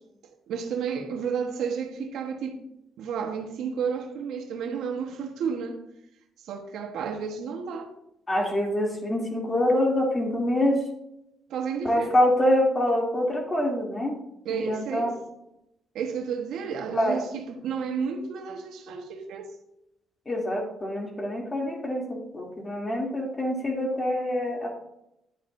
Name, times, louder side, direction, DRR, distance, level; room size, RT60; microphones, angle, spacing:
voice 1, 0.5-2.6 3.0-5.8 6.4-7.9 11.5-12.1 14.4-15.1 15.9-19.5, right 6 dB, 80° right, 1.3 m, -32 dB
voice 2, 8.3-10.8 11.8-14.2 14.5-15.1 16.9-17.2 20.3-24.7, left 1 dB, 25° left, 3.0 m, -25 dB
10.0 x 8.6 x 2.7 m
cardioid pair, 90°, 0 cm